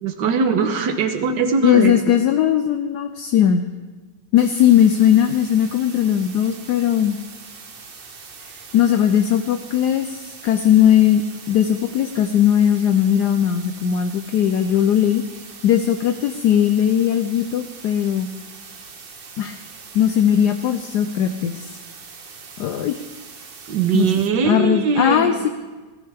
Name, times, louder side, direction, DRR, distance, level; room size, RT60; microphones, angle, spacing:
voice 1, 0.0-2.1 23.7-25.5, right 6 dB, 75° right, 7 dB, 1.7 m, -21 dB
voice 2, 1.6-3.7 4.3-7.2 8.7-15.2 15.6-18.3 19.4-19.6 19.9-21.8 22.6-23.0 23.9-25.5, left 10 dB, 70° left, 7 dB, 1.1 m, -18 dB
sound 1, 4.4-24.3, right 5 dB, 40° right, 0.9 m, -41 dB
18.5 x 13.5 x 3.4 m, 1.3 s
omnidirectional pair, 2.0 m